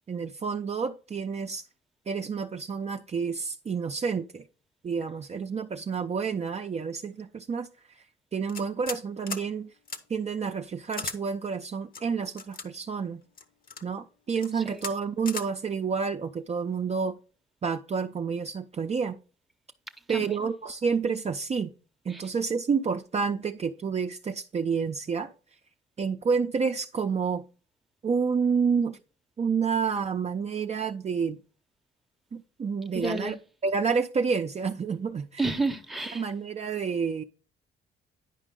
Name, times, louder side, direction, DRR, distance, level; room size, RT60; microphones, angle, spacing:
voice 1, 0.1-1.7 2.1-4.5 4.8-7.7 8.3-9.7 10.1-13.2 13.8-17.2 17.6-19.2 20.1-21.7 22.0-25.3 26.0-27.4 28.0-29.0 29.4-31.4 32.3-33.4 33.6-35.5 36.1-37.2, right 5 dB, 35° right, 0.5 m, -29 dB
sound 1, 8.5-9.0 9.3-9.5 9.9-10.0 10.9-11.2 11.9-12.7 13.4-13.8 14.3-14.5 14.8-14.9 15.3-15.5, left 4 dB, 45° left, 0.9 m, -36 dB
voice 2, 32.9-33.3 35.4-36.2, right 3 dB, ahead, 0.8 m, -29 dB
9.9 x 5.0 x 3.7 m
cardioid pair, 90°, 20 cm